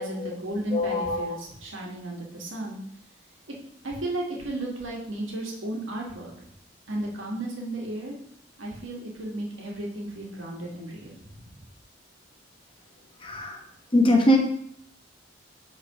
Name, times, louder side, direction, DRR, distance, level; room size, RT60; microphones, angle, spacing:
voice 1, 0.0-2.8 3.8-6.3 6.9-8.2 8.6-11.6, right 1 dB, 90° right, -2 dB, 1.8 m, -34 dB
voice 2, 0.7-1.4 13.2-13.6 13.9-14.4, left 1 dB, 25° left, 1 dB, 1.1 m, -22 dB
5.5 x 4.0 x 5.9 m, 0.69 s
head